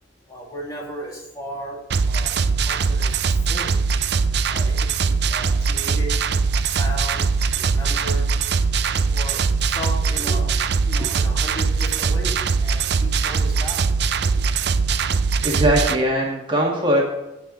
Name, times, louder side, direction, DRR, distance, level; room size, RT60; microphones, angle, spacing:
voice 1, 0.3-3.1 3.5-3.8 4.5-6.1 6.6-8.3 9.1-10.5 10.8-13.9, equal, 20° left, -2 dB, 2.3 m, -35 dB
sound 1, 1.9-15.9, right 5 dB, 60° right, 0.5 m, -21 dB
voice 2, 15.4-17.0, right 1 dB, 25° right, -1 dB, 1.9 m, -21 dB
17.0 x 5.7 x 4.0 m, 0.95 s
head